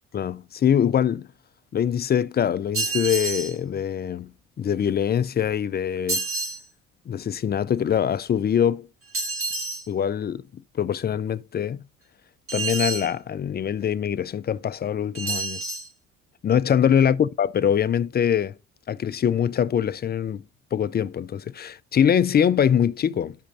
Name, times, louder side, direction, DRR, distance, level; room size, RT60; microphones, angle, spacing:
voice 1, 0.1-1.3 1.7-4.3 4.6-6.2 7.1-8.9 9.9-11.8 12.5-15.6 16.4-18.5 18.9-20.4 20.7-23.4, left 8 dB, 25° left, 0.4 m, -23 dB
sound 1, 2.7-3.6 6.1-6.6 9.1-9.8 12.5-13.1 15.1-15.9, right 3 dB, 35° right, 2.1 m, -28 dB
11.0 x 5.1 x 2.5 m
hypercardioid pair, 55°, 37 cm